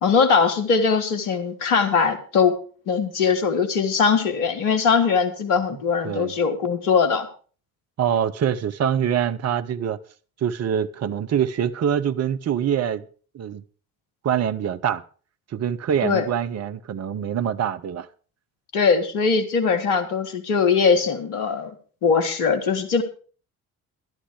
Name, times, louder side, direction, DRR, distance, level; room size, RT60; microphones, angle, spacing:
voice 1, 0.0-2.6 2.9-7.3 16.0-16.3 18.7-21.7 22.0-23.0, left 5 dB, 75° left, 1.6 m, -21 dB
voice 2, 8.0-10.0 10.4-13.1 13.3-13.6 14.2-15.0 15.5-18.1, right 9 dB, 35° right, 0.8 m, -24 dB
11.5 x 10.5 x 4.9 m
figure-of-eight pair, 50°, 43 cm